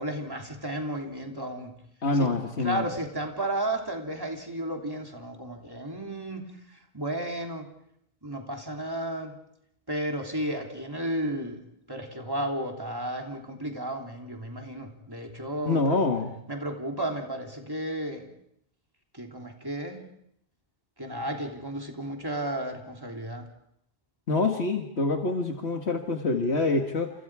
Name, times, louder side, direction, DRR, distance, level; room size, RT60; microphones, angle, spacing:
voice 1, 0.0-1.7 2.1-6.5 6.9-7.7 8.2-9.4 9.9-11.6 11.9-16.1 16.5-18.2 19.1-20.0 21.0-23.4, right 1 dB, 20° right, 1 dB, 3.3 m, -33 dB
voice 2, 2.0-2.9 15.7-16.3 24.3-27.1, left 3 dB, 70° left, 3 dB, 2.0 m, -26 dB
29.5 x 28.0 x 4.9 m, 0.75 s
omnidirectional pair, 1.1 m